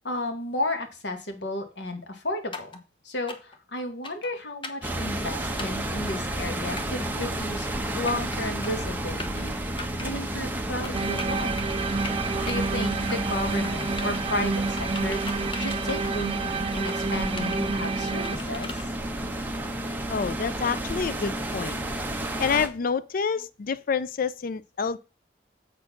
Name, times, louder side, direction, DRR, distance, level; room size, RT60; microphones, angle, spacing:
voice 1, 0.0-2.8 3.0-7.7 7.9-9.6 10.0-11.6 12.4-18.8, left 1 dB, 80° left, 1.5 m, -33 dB
sound 1, 2.5-2.8 3.3-3.6 4.0-4.3 4.6-4.9 5.6-5.8 6.8-7.1 7.8-8.4 8.6-8.9 9.2-9.4 9.8-10.1 10.8-11.7 12.0-12.5 12.9-13.4 13.6-14.3 14.8-16.3 16.7-17.0 17.4-18.8, left 3 dB, 30° left, 0.9 m, -39 dB
sound 2, 4.8-22.7, right 1 dB, 10° right, 1.0 m, -31 dB
sound 3, 10.9-18.4, right 4 dB, 35° right, 0.3 m, -29 dB
voice 2, 20.1-21.8 22.4-25.0, left 6 dB, 55° left, 0.4 m, -28 dB
7.5 x 4.3 x 5.8 m
head